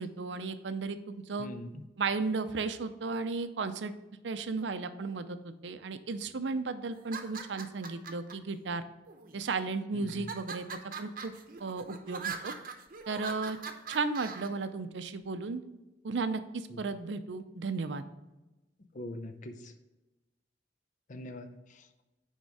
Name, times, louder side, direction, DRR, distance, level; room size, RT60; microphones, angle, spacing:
voice 1, 0.0-1.5 2.0-3.9 4.2-8.8 9.3-10.7 11.0-11.3 11.6-12.5 13.1-13.6 13.9-15.6 16.0-18.0, right 4 dB, 80° right, 11 dB, 0.6 m, -34 dB
voice 2, 1.4-1.7 9.9-10.3 16.7-16.8 18.9-19.7 21.1-21.8, left 1 dB, 45° left, 8 dB, 0.6 m, -43 dB
sound 1, 7.0-8.3 9.1-9.6 10.1-14.5, right 5 dB, 50° right, 0.8 m, -41 dB
9.5 x 3.6 x 4.8 m, 1.0 s
head